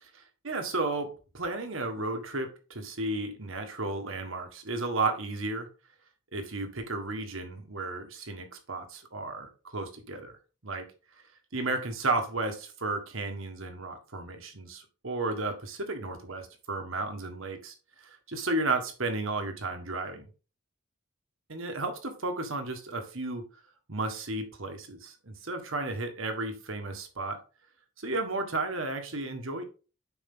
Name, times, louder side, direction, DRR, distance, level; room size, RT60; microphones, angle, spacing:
voice 1, 0.0-5.7 6.3-10.3 10.6-10.9 11.5-20.3 21.5-23.4 23.9-27.4 28.0-29.6, right 2 dB, 65° right, 1.6 m, -33 dB
7.3 x 5.5 x 3.7 m
head